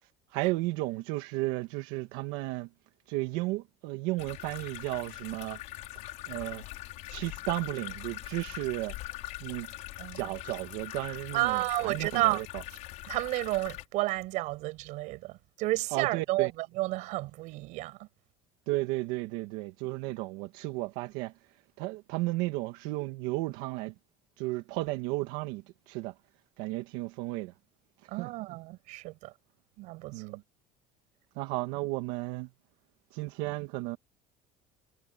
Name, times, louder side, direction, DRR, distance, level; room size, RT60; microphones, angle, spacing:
voice 1, 0.3-2.7 3.1-5.6 6.3-6.6 7.1-9.0 9.4-9.7 10.1-12.6 15.9-16.5 18.7-21.3 21.8-23.9 24.4-26.1 26.6-27.5 28.2-28.3 30.1-30.4 31.4-32.5 33.1-34.0, right 20 dB, 80° right, 2.1 m, -34 dB
sound 1, 4.2-13.9, left 18 dB, 60° left, 5.7 m, -42 dB
voice 2, 10.0-10.3 11.3-12.4 13.1-18.1 28.1-29.3 29.8-30.3, right 20 dB, 60° right, 6.4 m, -31 dB
cardioid pair, 160°, 14 cm